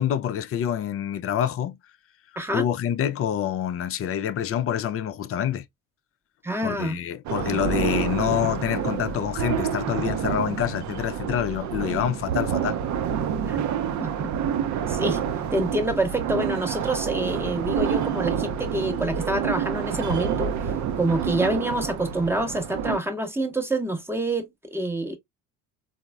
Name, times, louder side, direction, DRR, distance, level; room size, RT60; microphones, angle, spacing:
voice 1, 0.0-1.8 2.5-5.6 6.6-12.8, left 10 dB, 30° left, 0.4 m, -27 dB
voice 2, 6.4-7.0 13.5-13.6 14.0-14.3 14.9-15.2 15.5-25.2, right 1 dB, 5° right, 0.8 m, -27 dB
sound 1, 7.3-23.0, right 8 dB, 40° right, 0.5 m, -28 dB
3.9 x 2.0 x 2.2 m
hypercardioid pair, 70°, 47 cm